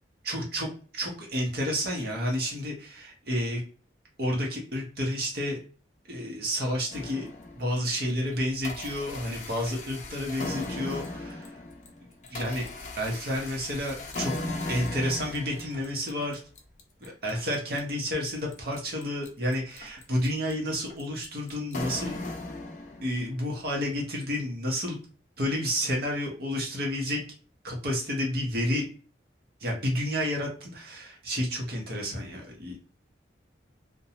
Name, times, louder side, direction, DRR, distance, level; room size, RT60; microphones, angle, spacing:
voice 1, 0.2-3.6 4.2-5.6 6.1-7.3 7.5-11.5 12.3-12.6 13.0-14.3 14.7-16.4 17.0-22.2 23.0-25.0 25.4-27.2 27.6-28.8 29.6-32.8, equal, 50° right, -1 dB, 0.8 m, -30 dB
sound 1, 6.9-7.8 8.3-23.4, left 2 dB, 40° left, 0.5 m, -38 dB
2.6 x 2.2 x 2.8 m, 0.39 s
head